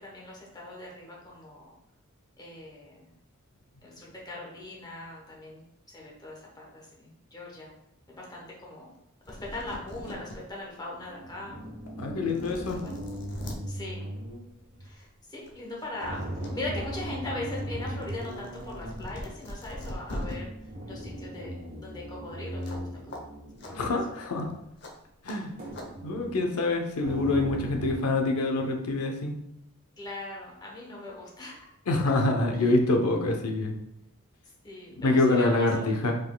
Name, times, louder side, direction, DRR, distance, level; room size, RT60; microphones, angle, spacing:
voice 1, 0.0-1.7 2.4-3.1 3.8-7.7 8.1-8.9 9.3-11.6 12.7-13.0 13.7-14.1 14.8-16.2 16.5-20.5 20.9-21.5 21.8-23.3 23.6-24.0 30.0-31.6 34.6-35.9, left 2 dB, 20° left, -3 dB, 1.0 m, -40 dB
sound 1, 9.0-9.1 9.2-10.4 10.9-11.0 11.9-12.0 12.3-13.6 14.9-15.0 15.4-16.5 16.8-20.3 22.6-22.8 23.1-23.2 23.6-23.7 24.8-24.9 25.3-25.4 25.7-25.9, left 1 dB, 50° left, 0.8 m, -41 dB
sound 2, 10.0-10.3 11.0-14.9 16.0-19.0 20.1-24.1 24.4-24.5 25.6-26.4 27.0-27.9, right 1 dB, 40° right, 1.4 m, -38 dB
voice 2, 12.0-12.8 23.7-24.5 25.2-25.5 26.0-29.4 31.9-33.7 35.0-36.1, left 2 dB, 85° left, 3 dB, 0.7 m, -26 dB
5.2 x 3.8 x 2.2 m, 0.83 s
head